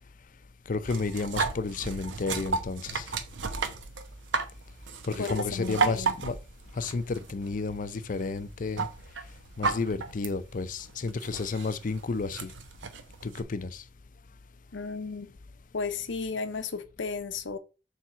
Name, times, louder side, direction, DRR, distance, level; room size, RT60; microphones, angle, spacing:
voice 1, 0.7-3.1 5.1-6.3 6.8-8.9 9.6-12.5 13.2-13.8, left 4 dB, 45° left, 0.5 m, -32 dB
sound 1, 0.8-13.4, right 4 dB, 85° right, 0.9 m, -34 dB
voice 2, 5.2-6.1 14.7-15.3 15.7-17.6, left 4 dB, 85° left, 0.8 m, -34 dB
7.2 x 3.5 x 5.5 m
head